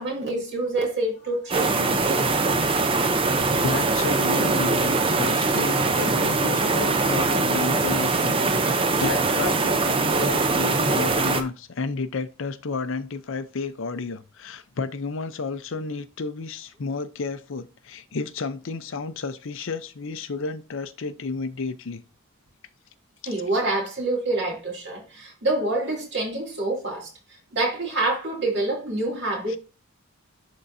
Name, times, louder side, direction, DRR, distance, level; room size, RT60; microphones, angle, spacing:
voice 1, 0.0-2.2 23.3-27.1 27.5-29.6, right 2 dB, 50° right, 2.5 m, -27 dB
sound 1, 1.5-11.4, right 3 dB, 25° right, 0.6 m, -22 dB
voice 2, 3.6-22.0 23.2-23.3 29.5-29.6, left 4 dB, 60° left, 0.6 m, -32 dB
11.0 x 3.8 x 2.6 m
head